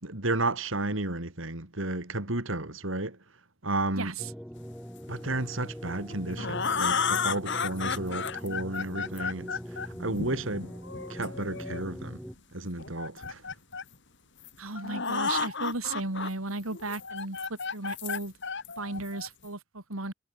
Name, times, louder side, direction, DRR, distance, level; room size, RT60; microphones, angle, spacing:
voice 1, 0.0-3.2 3.6-4.1 5.1-10.7 11.1-12.2 12.5-13.5, right 2 dB, 65° right, 3.4 m, -32 dB
voice 2, 3.9-4.3 14.6-18.3 18.8-20.1, right 3 dB, 90° right, 3.4 m, -35 dB
sound 1, 4.2-12.3, equal, ahead, 5.6 m, -42 dB
sound 2, 5.9-11.8 12.8-13.9 14.4-14.5 14.8-16.3 16.7-19.5, left 5 dB, 60° left, 3.3 m, -32 dB
head